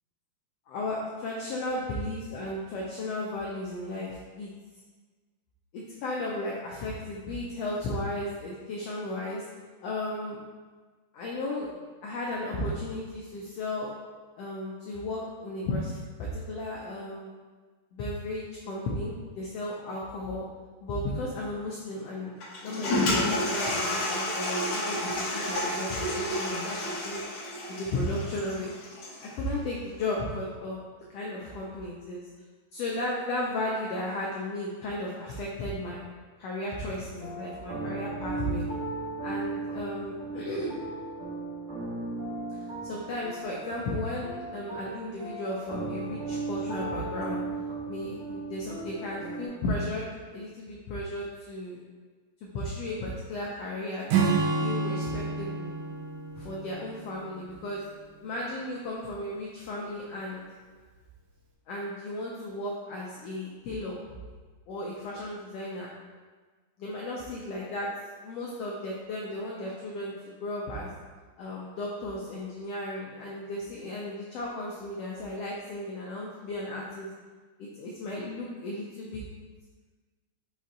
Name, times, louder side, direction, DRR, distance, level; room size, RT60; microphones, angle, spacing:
voice 1, 0.7-4.5 5.7-9.4 9.8-10.4 11.1-13.9 14.4-17.4 17.9-20.4 20.8-22.4 22.6-27.2 27.7-28.7 29.2-30.8 31.1-32.2 32.7-36.0 36.4-38.6 39.2-40.8 42.6-47.4 47.9-51.8 52.5-55.7 56.3-57.8 58.2-60.4 61.7-64.0 64.7-65.9 66.8-67.9 68.2-70.9 71.4-77.1 77.6-79.3, left 1 dB, 80° left, -3 dB, 1.4 m, -34 dB
Toilet flush, 22.4-29.3, left 1 dB, 65° left, 1.4 m, -30 dB
sound 1, 37.2-49.5, right 3 dB, 55° right, 0.8 m, -36 dB
Acoustic guitar / Strum, 54.1-57.6, right 4 dB, 80° right, 2.0 m, -29 dB
5.2 x 2.5 x 4.1 m, 1.4 s
omnidirectional pair, 3.4 m